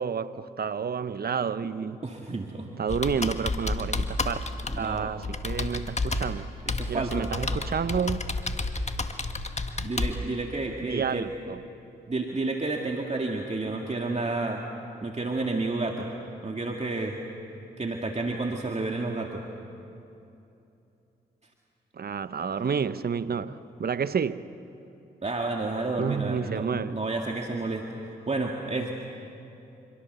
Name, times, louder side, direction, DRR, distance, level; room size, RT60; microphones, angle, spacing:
voice 1, 0.0-2.0 2.8-4.4 4.8-6.5 6.9-8.2 10.8-11.6 21.9-24.5 26.0-27.0, right 6 dB, 50° right, 1.0 m, -30 dB
voice 2, 2.0-2.7 4.7-5.1 6.7-7.3 9.8-11.3 12.1-14.6 15.0-16.1 16.4-17.2 17.8-19.4 25.2-27.9 28.3-29.0, right 3 dB, 35° right, 2.2 m, -30 dB
Computer keyboard, 2.9-10.2, left 2 dB, 35° left, 1.7 m, -31 dB
27.0 x 23.5 x 6.9 m
supercardioid pair, 40°, 20 cm